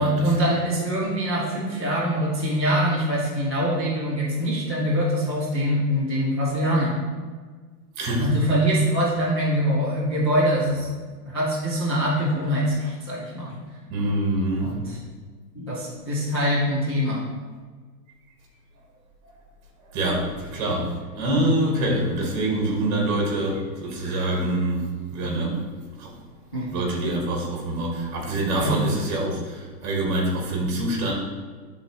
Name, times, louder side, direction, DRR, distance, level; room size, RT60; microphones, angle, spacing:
voice 1, 0.0-7.0 8.2-13.6 14.6-15.0 15.5-17.2 26.5-26.7 28.6-28.8, equal, 15° left, -10 dB, 0.4 m, -24 dB
voice 2, 13.9-14.7 19.9-25.7 26.0-26.1 26.7-31.1, right 1 dB, 25° right, -1 dB, 1.7 m, -25 dB
10.5 x 3.9 x 3.1 m, 1.5 s
hypercardioid pair, 160°, 49 cm